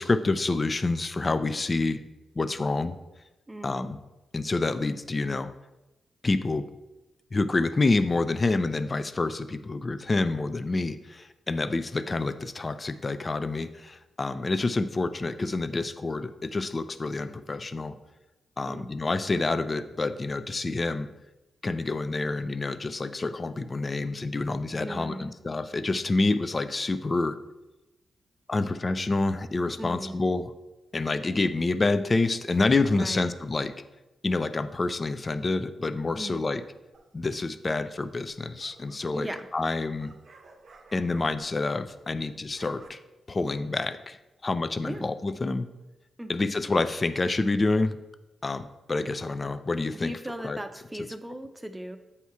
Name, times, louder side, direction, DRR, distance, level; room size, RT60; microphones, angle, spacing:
voice 1, 0.0-2.0 2.4-3.0 3.6-4.0 4.3-5.5 6.2-6.7 7.3-18.0 18.6-21.1 21.6-27.4 28.5-30.5 30.9-33.7 34.2-36.6 37.1-40.1 40.9-43.0 43.3-45.7 46.3-48.0 48.4-50.1 50.4-50.6, left 3 dB, 40° left, 11 dB, 0.5 m, -28 dB
voice 2, 3.5-3.9 18.7-18.9 24.8-25.3 29.8-30.2 32.9-33.3 36.2-36.5 39.1-39.5 44.8-45.0 46.2-46.3 49.9-52.0, right 1 dB, 15° right, 8 dB, 0.6 m, -37 dB
sound 1, 36.9-37.4 38.3-42.2 42.4-42.9, right 3 dB, 55° right, 0.7 m, -54 dB
8.2 x 2.9 x 4.7 m, 1.0 s
cardioid pair, 55°, 0 cm